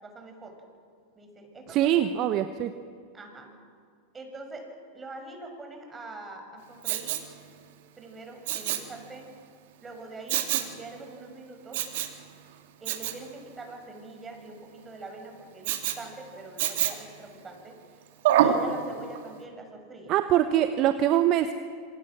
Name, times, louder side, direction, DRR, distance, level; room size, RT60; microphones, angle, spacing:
voice 1, 0.0-0.5 1.1-2.3 3.1-3.5 4.1-4.7 4.9-7.2 8.0-9.3 9.8-11.8 12.8-17.8 18.4-20.1, right 2 dB, 20° right, 3 dB, 6.4 m, -44 dB
voice 2, 1.7-2.7 20.1-21.5, right 11 dB, 45° right, 9 dB, 1.1 m, -23 dB
Respiratory sounds, 6.8-7.3 8.5-8.9 10.3-10.7 11.7-12.2 12.9-13.2 15.6-16.0 16.6-17.1 18.2-18.6 19.2-19.3, right 11 dB, 60° right, 2.4 m, -26 dB
27.0 x 24.5 x 6.2 m, 2.1 s
hypercardioid pair, 95°, 0 cm